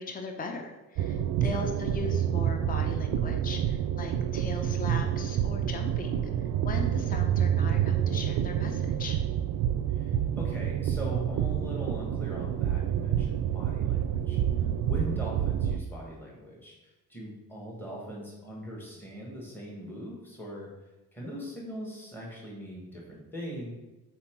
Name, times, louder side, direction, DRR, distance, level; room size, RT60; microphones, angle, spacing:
voice 1, 0.0-6.3 6.6-9.2, left 3 dB, 25° left, 4 dB, 0.6 m, -38 dB
sound 1, 1.0-15.8, right 10 dB, 70° right, 0.5 m, -28 dB
voice 2, 9.9-14.4 14.8-20.7 21.1-23.7, equal, 5° left, -4 dB, 1.4 m, -41 dB
5.7 x 4.4 x 4.5 m, 1.1 s
cardioid pair, 145°, 37 cm